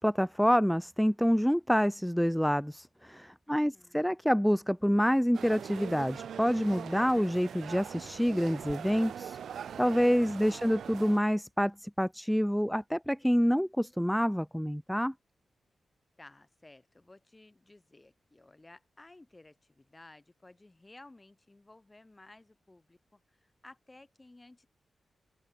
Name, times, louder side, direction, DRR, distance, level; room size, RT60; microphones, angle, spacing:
voice 1, 0.0-9.4 9.8-15.1, equal, ahead, 0.4 m, -27 dB
voice 2, 3.5-4.1 10.4-10.8 16.2-24.7, left 2 dB, 20° left, 6.6 m, -56 dB
sound 1, 5.3-11.2, right 8 dB, 90° right, 1.9 m, -42 dB
open air
wide cardioid pair, 135°, 0 cm